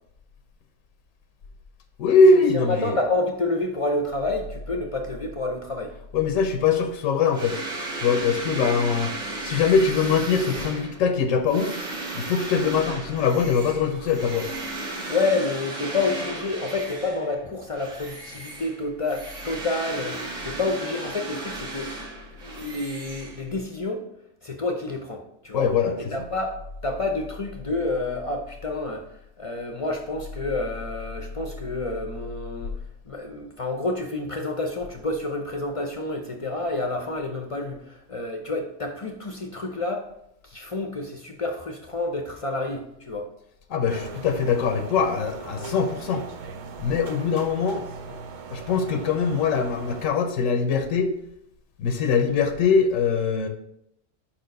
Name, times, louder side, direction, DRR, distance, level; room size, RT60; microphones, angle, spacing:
voice 1, 2.0-3.0 6.1-7.6 8.0-9.1 9.4-11.8 12.2-14.5 25.5-26.3 43.7-46.3 46.8-48.2 48.5-51.1 51.8-53.5, left 5 dB, 90° left, 6 dB, 1.1 m, -22 dB
voice 2, 2.5-5.9 15.1-21.9 22.4-24.1 24.4-25.7 26.1-29.1 29.4-32.7 33.1-40.1 40.4-43.3, left 2 dB, 40° left, 4 dB, 0.4 m, -29 dB
sound 1, 7.3-17.4 17.7-23.8, right 2 dB, 70° right, 1.7 m, -35 dB
sound 2, 43.9-50.1, right 4 dB, 55° right, 0.5 m, -39 dB
5.0 x 4.4 x 5.2 m, 0.78 s
omnidirectional pair, 1.3 m